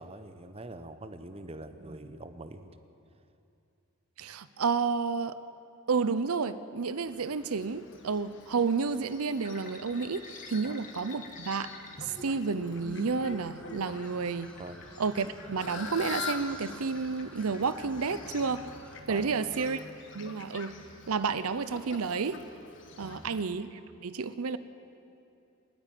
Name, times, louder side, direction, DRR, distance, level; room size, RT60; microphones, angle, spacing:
voice 1, 0.0-2.8 14.6-14.9 19.1-19.6 23.0-23.4, right 2 dB, 25° right, 9 dB, 0.9 m, -44 dB
voice 2, 4.2-5.4 5.9-11.7 12.0-14.5 15.0-18.6 19.1-19.8 20.1-20.7 21.1-22.4 23.0-24.6, right 5 dB, 85° right, 14 dB, 0.7 m, -31 dB
Fowl, 7.0-23.4, left 5 dB, 60° left, 1.4 m, -46 dB
sound 1, 9.4-19.6, left 1 dB, 40° left, 1.9 m, -48 dB
sound 2, 12.6-19.0, equal, 5° left, 1.6 m, -51 dB
28.5 x 10.0 x 9.2 m, 2.7 s
head